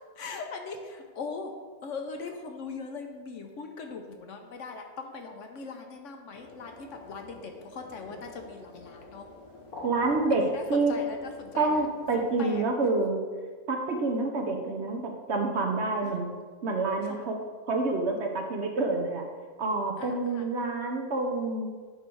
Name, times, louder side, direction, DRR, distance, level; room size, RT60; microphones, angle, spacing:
voice 1, 0.2-1.5 1.8-9.3 10.3-11.9 12.2-12.6 16.0-16.2 17.0-17.3 20.0-20.5, left 4 dB, 65° left, 4 dB, 0.9 m, -40 dB
sound 1, 6.3-12.5, left 2 dB, 80° left, 2.3 m, -46 dB
voice 2, 9.8-10.9 11.6-13.2 13.7-15.0 15.3-16.3 16.6-17.4 17.7-19.2 19.6-21.7, right 3 dB, 55° right, 2 dB, 0.9 m, -27 dB
9.2 x 3.2 x 6.1 m, 1.5 s
omnidirectional pair, 1.6 m